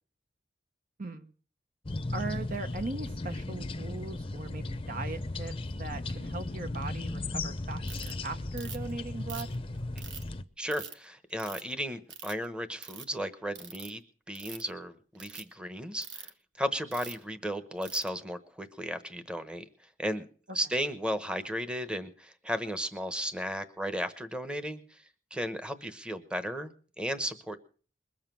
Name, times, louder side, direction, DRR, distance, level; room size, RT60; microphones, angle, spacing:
voice 1, 1.0-1.3 2.1-5.5 5.8-9.5, right 3 dB, 50° right, 8 dB, 0.9 m, -39 dB
sound 1, 1.9-10.4, left 2 dB, 30° left, 0.7 m, -36 dB
Ratchet pawl, 7.9-8.1 8.6-8.9 9.3-10.2 10.7-10.9 11.4-11.7 12.1-12.4 12.8-13.0 13.5-13.9 14.3-14.7 15.1-15.4 16.0-16.3 16.9-17.2 17.8-18.1, right 7 dB, 85° right, 1.3 m, -43 dB
voice 2, 10.6-14.0 14.3-16.3 16.6-19.6 20.0-20.3 20.5-25.0 25.3-27.6, equal, 5° right, 10 dB, 1.0 m, -35 dB
21.5 x 7.4 x 6.0 m, 0.41 s
head